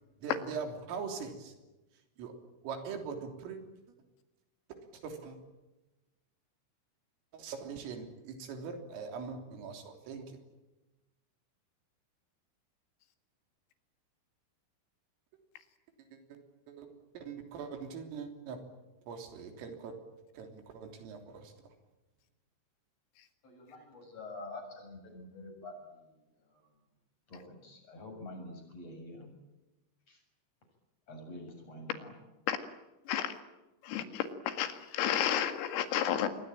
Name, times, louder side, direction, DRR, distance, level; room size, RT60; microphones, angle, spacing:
voice 1, 0.2-1.5 2.2-2.4 2.6-3.6 5.0-5.4 7.3-10.4 16.1-16.4 16.7-18.6 19.1-20.0 20.3-21.5, right 5 dB, 80° right, 5 dB, 6.0 m, -42 dB
voice 2, 23.4-26.0 27.3-29.3 30.1-30.2 31.1-32.1, left 2 dB, 30° left, 4 dB, 8.2 m, -47 dB
voice 3, 33.8-36.3, left 10 dB, 85° left, 8 dB, 4.6 m, -31 dB
27.0 x 22.0 x 8.9 m, 1.0 s
omnidirectional pair, 5.8 m